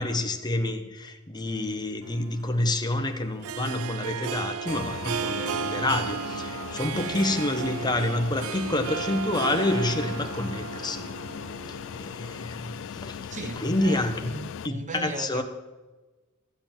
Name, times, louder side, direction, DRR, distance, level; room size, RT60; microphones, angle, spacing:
voice 1, 0.0-11.1 11.7-14.2 14.6-15.4, left 1 dB, 20° left, 1.1 m, -28 dB
Harp, 2.0-12.5, right 8 dB, 70° right, 0.4 m, -35 dB
Fixed-wing aircraft airplane, 4.7-14.7, left 7 dB, 60° left, 0.4 m, -38 dB
voice 2, 13.3-15.4, right 2 dB, 35° right, 1.1 m, -37 dB
14.5 x 8.0 x 7.3 m
head